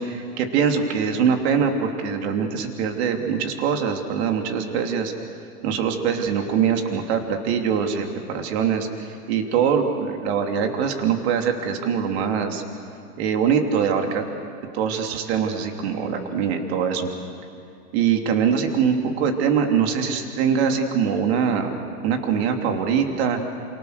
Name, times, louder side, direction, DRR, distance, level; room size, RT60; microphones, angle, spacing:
voice 1, 0.0-5.1 5.6-12.6 13.2-14.2 14.7-17.1 17.9-23.4, right 7 dB, 40° right, 4 dB, 3.1 m, -23 dB
29.0 x 27.5 x 6.7 m, 2.7 s
hypercardioid pair, 150°, 46 cm